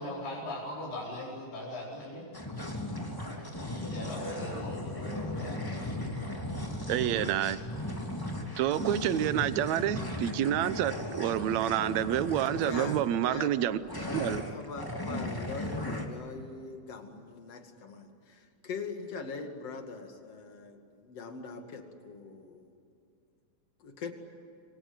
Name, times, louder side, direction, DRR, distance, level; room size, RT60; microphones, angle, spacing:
voice 1, 0.0-2.2 3.8-5.6, left 1 dB, 85° left, -7 dB, 6.7 m, -39 dB
sound 1, 2.3-13.1 13.9-16.1, left 1 dB, 5° left, 2.5 m, -37 dB
Thunder / Rain, 6.0-14.4, right 1 dB, 45° right, 4.4 m, -51 dB
voice 2, 6.9-7.6 8.6-13.8 14.1-14.4, right 11 dB, 70° right, 13 dB, 2.0 m, -28 dB
voice 3, 12.6-13.5 14.0-22.7 23.8-24.1, left 4 dB, 50° left, 4 dB, 3.3 m, -42 dB
28.0 x 24.5 x 8.1 m, 2.5 s
omnidirectional pair, 3.8 m